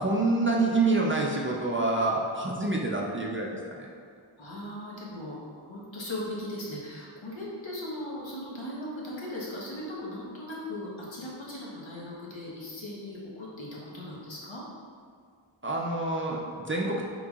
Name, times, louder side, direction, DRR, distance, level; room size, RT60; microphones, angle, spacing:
voice 1, 0.0-3.9 15.6-17.1, right 2 dB, 25° right, -2 dB, 0.4 m, -27 dB
voice 2, 4.4-5.4 5.7-14.6, left 1 dB, 70° left, -5 dB, 1.2 m, -38 dB
5.4 x 3.8 x 2.4 m, 2.1 s
wide cardioid pair, 65°, 47 cm